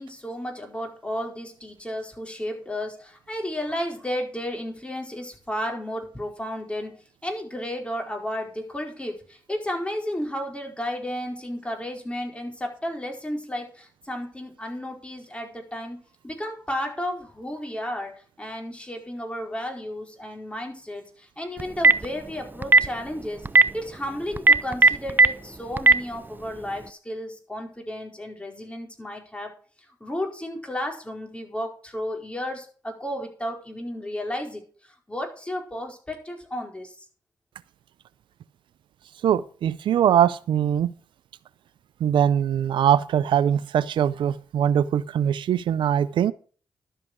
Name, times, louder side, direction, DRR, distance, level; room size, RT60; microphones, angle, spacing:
voice 1, 0.0-29.5 29.8-37.0, left 1 dB, 15° left, 4.7 m, -33 dB
Telephone, 21.6-22.1 22.6-22.9 23.4-23.6 24.4-25.3 25.8-25.9, right 3 dB, 25° right, 0.7 m, -13 dB
voice 2, 39.2-40.9 42.0-46.3, right 9 dB, 80° right, 0.5 m, -22 dB
12.0 x 7.7 x 6.1 m
cardioid pair, 60°, 8 cm